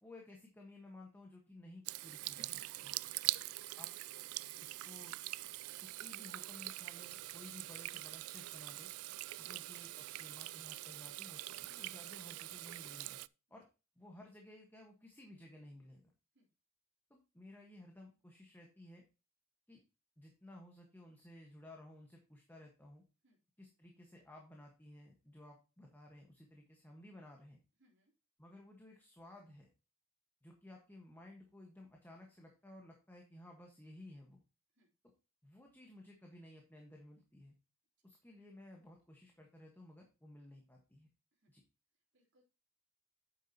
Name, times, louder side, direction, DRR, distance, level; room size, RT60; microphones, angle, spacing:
voice 1, 0.0-2.9 3.8-3.9 4.6-8.9 9.4-13.2 13.5-13.7 14.0-16.1 17.1-19.0 19.7-19.8 20.2-23.0 23.6-27.6 28.4-29.7 30.4-34.4 35.4-37.5 38.0-41.1 41.5-41.6, left 1 dB, 10° left, 0 dB, 1.5 m, -56 dB
Water tap faucet / Sink (filling or washing), 1.9-13.3, right 18 dB, 90° right, 0.3 m, -43 dB
voice 2, 27.8-28.1 34.7-34.9 38.0-38.1 41.3-41.5 41.9-42.4, equal, 55° right, -2 dB, 3.5 m, -75 dB
9.3 x 7.4 x 2.9 m, 0.31 s
head